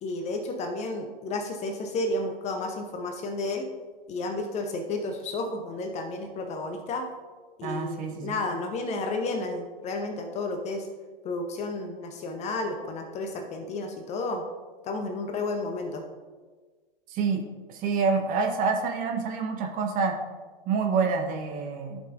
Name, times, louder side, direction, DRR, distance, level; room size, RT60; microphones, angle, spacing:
voice 1, 0.0-3.7 4.1-7.1 7.6-10.9 11.2-14.4 14.8-16.0, left 2 dB, 25° left, 4 dB, 0.8 m, -32 dB
voice 2, 7.6-8.4 17.1-17.4 17.7-20.1 20.7-22.0, right 5 dB, 30° right, 3 dB, 1.1 m, -27 dB
14.5 x 5.4 x 2.6 m, 1.4 s
hypercardioid pair, 115°, 29 cm